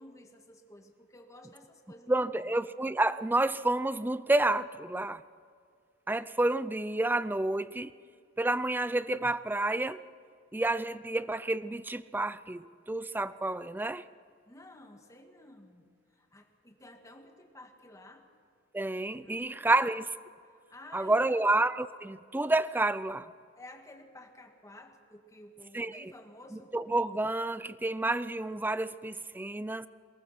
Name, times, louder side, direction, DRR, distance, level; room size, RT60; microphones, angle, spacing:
voice 1, 0.0-2.5 14.5-15.8 16.1-18.3 19.2-20.0 20.7-21.5 23.5-26.7, left 1 dB, 15° left, 1.8 m, -52 dB
voice 2, 2.1-5.2 6.1-7.9 8.4-10.0 10.5-14.0 18.7-20.1 20.9-23.3 25.7-26.1 26.5-29.9, right 2 dB, 10° right, 0.4 m, -29 dB
22.5 x 19.0 x 6.0 m
head